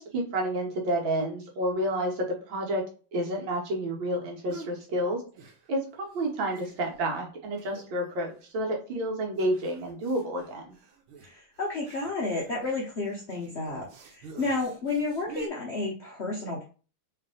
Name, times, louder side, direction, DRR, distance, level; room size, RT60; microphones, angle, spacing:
voice 1, 0.0-2.8 3.1-5.2 5.7-10.8, right 1 dB, 70° right, 0 dB, 1.7 m, -30 dB
sound 1, 4.5-4.8 5.3-5.9 6.1-6.2 6.5-7.1 7.6-8.1 8.4-8.5 9.4-15.5, right 4 dB, 85° right, 1.6 m, -47 dB
voice 2, 11.2-16.7, left 3 dB, 70° left, -1 dB, 0.6 m, -31 dB
3.3 x 3.2 x 3.7 m, 0.37 s
omnidirectional pair, 2.2 m